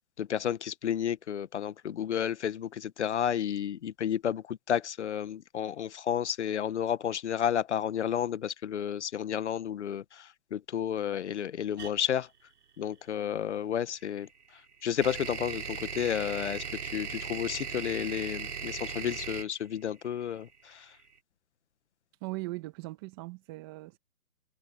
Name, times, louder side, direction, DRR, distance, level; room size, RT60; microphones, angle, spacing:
voice 1, 0.2-12.3 12.8-21.0, left 9 dB, 50° left, 1.4 m, -32 dB
sound 1, 11.8-11.9 14.0-21.0, right 6 dB, 80° right, 3.0 m, -38 dB
voice 2, 22.2-24.0, right 21 dB, 15° right, 1.1 m, -39 dB
hypercardioid pair, 160°, 45 cm